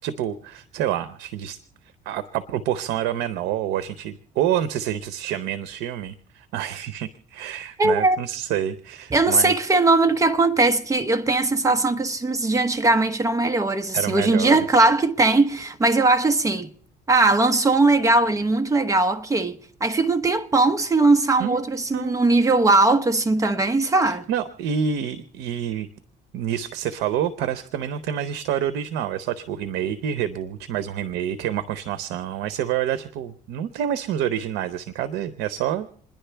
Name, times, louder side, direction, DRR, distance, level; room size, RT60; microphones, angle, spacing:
voice 1, 0.0-1.6 2.1-9.5 13.9-14.6 21.4-21.6 21.9-22.2 24.0-25.9 26.3-35.9, right 10 dB, 85° right, 0.7 m, -27 dB
voice 2, 7.8-8.2 9.1-16.7 17.1-24.2, right 2 dB, 20° right, 1.0 m, -19 dB
27.5 x 10.5 x 3.4 m
cardioid pair, 110°, 17 cm